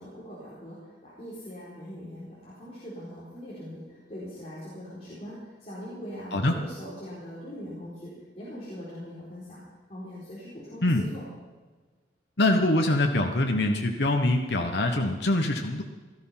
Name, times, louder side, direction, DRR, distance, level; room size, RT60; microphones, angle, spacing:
voice 1, 0.0-8.1 8.4-9.6 9.9-11.2, equal, 35° left, -9 dB, 4.3 m, -41 dB
voice 2, 12.4-15.8, left 1 dB, 60° left, 3 dB, 1.2 m, -24 dB
18.0 x 13.0 x 5.8 m, 1.4 s
head